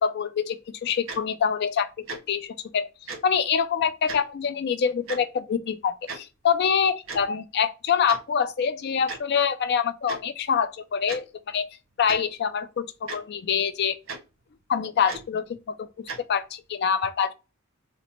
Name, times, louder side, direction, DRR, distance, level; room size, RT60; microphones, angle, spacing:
voice 1, 0.0-2.9 3.2-11.7 12.0-14.0 14.7-17.3, left 7 dB, 55° left, 0.4 m, -25 dB
Tick-tock, 1.1-1.2 2.1-2.2 3.1-3.2 4.1-4.2 5.1-5.2 6.1-6.2 7.1-7.2 8.1-8.2 9.1-9.2 10.1-10.2 11.1-11.2 12.0-12.2 13.1-13.2 14.1-14.2 15.1-15.2 16.1-16.2, right 3 dB, 85° right, 1.3 m, -35 dB
4.0 x 2.1 x 4.2 m
head